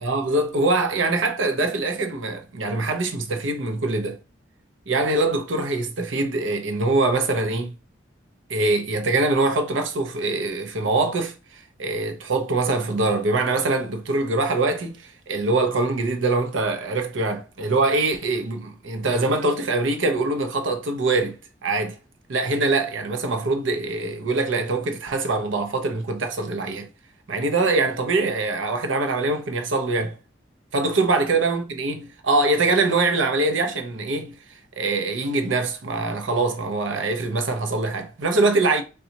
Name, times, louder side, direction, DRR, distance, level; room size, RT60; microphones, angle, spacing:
voice 1, 0.0-4.2 4.9-7.8 8.5-11.3 11.8-22.0 22.3-26.9 27.3-30.2 30.7-34.3 34.8-38.8, right 3 dB, 85° right, 0.6 m, -23 dB
3.8 x 2.3 x 2.8 m
head